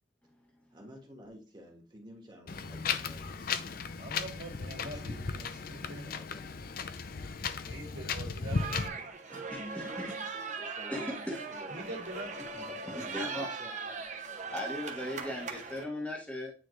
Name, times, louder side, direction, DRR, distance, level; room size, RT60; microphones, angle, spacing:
voice 1, 0.7-3.5 4.8-6.6 8.3-8.4 9.0-12.0 12.7-14.2, equal, 25° right, 1 dB, 1.5 m, -51 dB
Wind, 2.5-8.9, left 5 dB, 50° left, 0.5 m, -36 dB
voice 2, 4.0-5.1 5.7-6.1 7.6-9.0 11.7-13.4, right 1 dB, 65° right, 0 dB, 2.2 m, -44 dB
sound 1, 8.5-15.8, right 4 dB, 40° right, 1.0 m, -40 dB
voice 3, 9.5-10.1 10.9-11.6 13.1-13.5 14.5-16.5, left 1 dB, 10° left, -1 dB, 1.2 m, -37 dB
9.2 x 3.8 x 3.1 m, 0.37 s
head